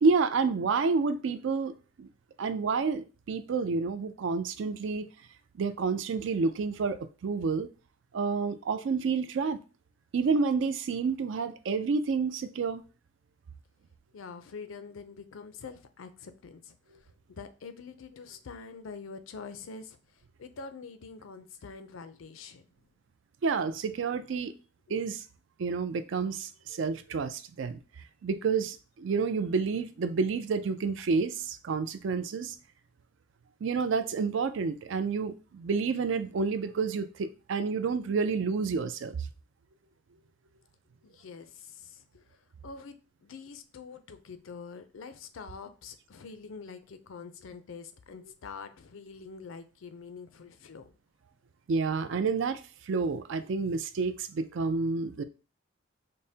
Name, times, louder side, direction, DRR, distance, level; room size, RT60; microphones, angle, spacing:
voice 1, 0.0-1.7 2.0-2.1 2.4-5.1 5.5-7.7 8.1-9.6 10.1-12.8 23.4-24.5 24.9-25.2 25.6-27.8 28.2-32.6 33.6-39.3 51.7-55.2, right 4 dB, 60° right, 0.4 m, -29 dB
voice 2, 14.1-22.7 41.0-51.0, left 5 dB, 75° left, 0.5 m, -45 dB
5.2 x 2.1 x 2.7 m
head